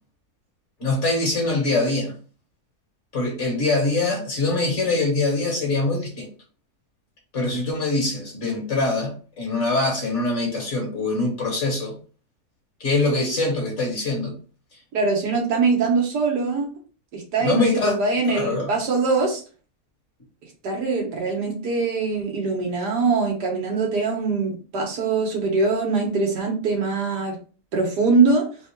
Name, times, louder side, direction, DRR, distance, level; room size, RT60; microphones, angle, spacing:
voice 1, 0.8-2.1 3.1-6.3 7.3-11.9 12.8-14.3 17.4-18.0 18.3-18.7, left 2 dB, 50° left, 0 dB, 1.6 m, -23 dB
voice 2, 14.9-16.7 17.1-19.4 20.6-27.4 27.7-28.4, right 4 dB, 90° right, 0 dB, 1.9 m, -22 dB
4.2 x 2.4 x 4.5 m, 0.38 s
omnidirectional pair, 1.7 m